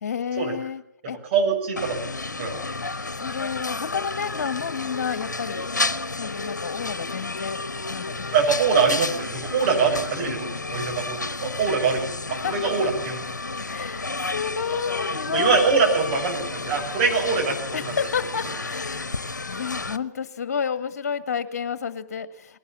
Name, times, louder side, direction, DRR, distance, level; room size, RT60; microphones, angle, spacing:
voice 1, 0.0-1.2 3.2-5.7 6.2-7.6 7.9-8.3 12.4-12.7 13.7-15.6 17.7-22.6, left 7 dB, 60° left, 12 dB, 1.9 m, -30 dB
voice 2, 1.0-2.0 2.4-2.6 8.3-13.2 15.3-17.9, right 5 dB, 40° right, 1 dB, 7.0 m, -23 dB
sound 1, 1.8-20.0, left 3 dB, 80° left, 1.2 m, -31 dB
20.5 x 17.5 x 7.6 m, 0.69 s
figure-of-eight pair, 125°, 10 cm